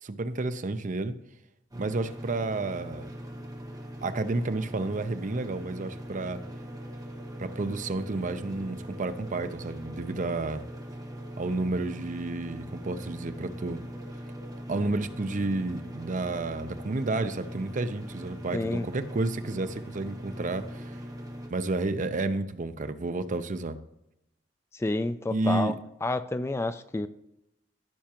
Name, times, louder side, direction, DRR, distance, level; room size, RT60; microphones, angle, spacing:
voice 1, 0.0-1.1 1.8-3.1 4.0-6.4 7.4-10.6 11.4-13.8 14.7-21.0 21.5-23.8 25.3-25.7, right 2 dB, 45° right, 10 dB, 0.6 m, -31 dB
sound 1, 1.7-21.5, equal, 20° right, 1.3 m, -41 dB
voice 2, 18.5-18.9 24.7-25.7 26.0-27.1, left 2 dB, 15° left, 12 dB, 0.3 m, -29 dB
15.0 x 5.7 x 2.9 m, 0.85 s
head